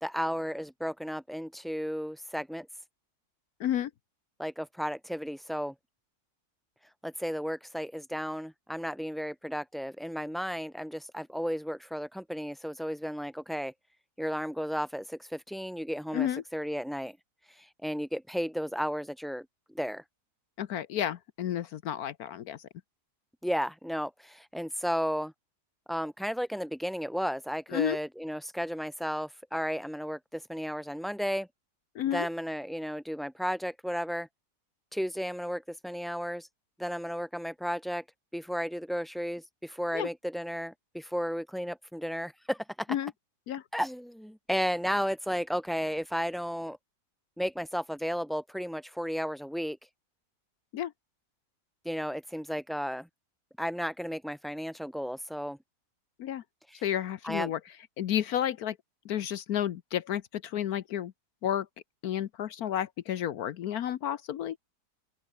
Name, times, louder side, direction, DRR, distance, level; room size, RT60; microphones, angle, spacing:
voice 1, 0.0-2.7 4.4-5.7 7.0-13.7 14.2-17.2 17.5-19.4 19.7-20.0 23.4-25.3 25.9-31.5 32.1-34.3 34.9-36.5 36.8-38.0 38.3-42.9 43.7-46.8 47.4-49.8 51.8-53.1 53.6-55.6 56.7-56.9 57.2-57.5, equal, ahead, 0.7 m, -33 dB
voice 2, 3.6-3.9 16.1-16.4 20.6-22.6 27.7-28.0 31.9-32.3 39.9-40.1 42.9-43.1 43.5-43.6 50.7-50.9 56.2-56.4 56.8-57.6 58.0-58.8 59.0-61.1 61.4-61.7 62.0-64.6, left 11 dB, 70° left, 1.3 m, -31 dB
open air
omnidirectional pair, 1.6 m